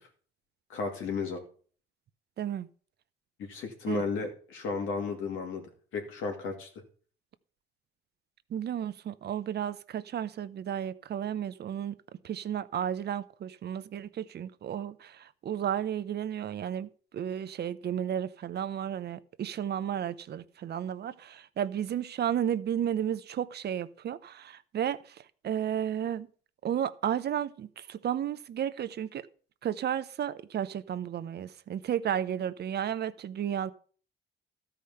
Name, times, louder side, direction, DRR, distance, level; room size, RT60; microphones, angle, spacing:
voice 1, 0.7-1.4 3.4-5.6 5.9-6.7, left 5 dB, 85° left, 2.6 m, -33 dB
voice 2, 2.4-2.7 3.9-4.0 8.5-12.0 12.2-26.3 26.6-29.3 29.6-33.7, right 9 dB, 55° right, 0.7 m, -33 dB
13.0 x 5.0 x 5.6 m
cardioid pair, 90°, 20 cm